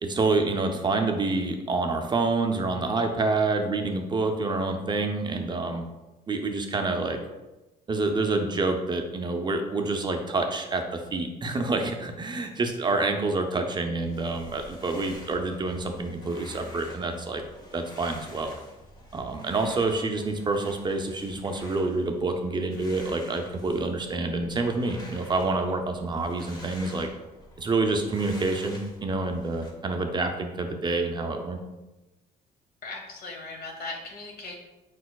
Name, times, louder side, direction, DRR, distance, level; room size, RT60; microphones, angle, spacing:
voice 1, 0.0-5.8 6.3-7.2 7.9-17.4 17.7-18.6 19.1-27.1 27.6-31.6, right 3 dB, 25° right, 4 dB, 0.5 m, -27 dB
sound 1, 14.0-29.7, left 1 dB, 25° left, 1.0 m, -47 dB
voice 2, 32.8-34.6, left 3 dB, 65° left, 1 dB, 1.1 m, -38 dB
4.7 x 4.2 x 2.3 m, 1.0 s
cardioid pair, 110°, 17 cm